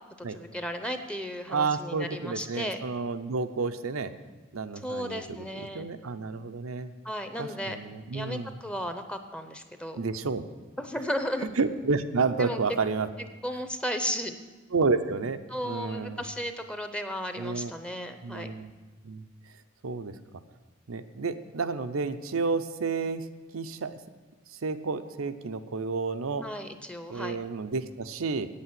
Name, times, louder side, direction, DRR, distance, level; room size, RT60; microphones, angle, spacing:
voice 1, 0.3-2.8 4.8-5.8 7.0-7.8 8.1-10.0 10.8-11.5 12.4-12.6 13.4-14.4 15.5-18.5 26.4-27.4, equal, 5° left, 7 dB, 0.6 m, -34 dB
voice 2, 1.5-4.1 4.5-6.9 7.4-8.5 10.0-10.4 11.6-13.1 14.7-16.2 17.4-17.7 18.2-18.7 19.0-19.2 19.8-20.1 20.9-23.3 23.5-23.9 24.5-26.4 27.1-28.5, right 4 dB, 90° right, 10 dB, 0.7 m, -30 dB
8.8 x 8.5 x 7.6 m, 1.3 s
head